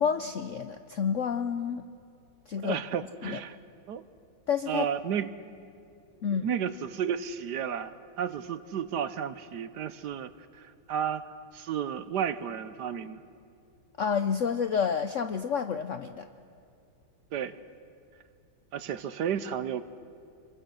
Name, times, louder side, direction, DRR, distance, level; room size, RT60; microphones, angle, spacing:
voice 1, 0.0-1.8 2.5-2.8 3.2-3.4 4.5-4.9 6.2-6.5 14.0-16.3, left 6 dB, 65° left, 9 dB, 0.7 m, -29 dB
voice 2, 2.6-3.6 3.9-4.0 4.7-5.3 6.4-11.2 11.5-13.2 17.3-17.6 18.7-19.8, right 8 dB, 65° right, 13 dB, 1.3 m, -32 dB
28.0 x 22.5 x 6.4 m, 2.6 s
omnidirectional pair, 2.1 m